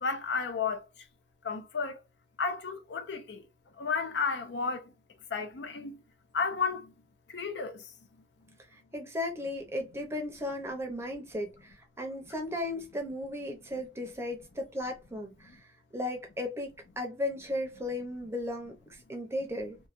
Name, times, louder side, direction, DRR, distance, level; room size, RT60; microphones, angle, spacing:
voice 1, 0.0-0.8 1.4-2.0 2.4-3.4 3.8-4.8 5.3-6.0 6.3-6.8 7.3-7.8 17.8-17.9, left 5 dB, 65° left, 0.6 m, -32 dB
voice 2, 8.7-19.8, left 1 dB, 15° right, 0.6 m, -36 dB
3.1 x 2.2 x 2.5 m
head